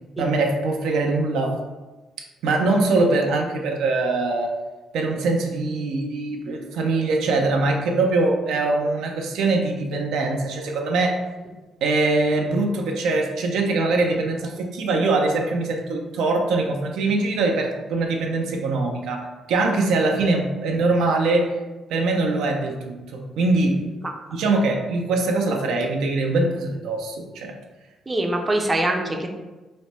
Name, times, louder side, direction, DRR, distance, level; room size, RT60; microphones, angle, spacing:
voice 1, 0.2-1.5 2.4-4.5 4.9-11.2 11.8-21.6 21.9-23.8 24.3-27.5, right 3 dB, 85° right, 2 dB, 0.5 m, -22 dB
voice 2, 28.1-29.3, right 1 dB, 25° right, 3 dB, 0.5 m, -24 dB
3.1 x 2.1 x 4.1 m, 1.2 s
cardioid pair, 90°, 0 cm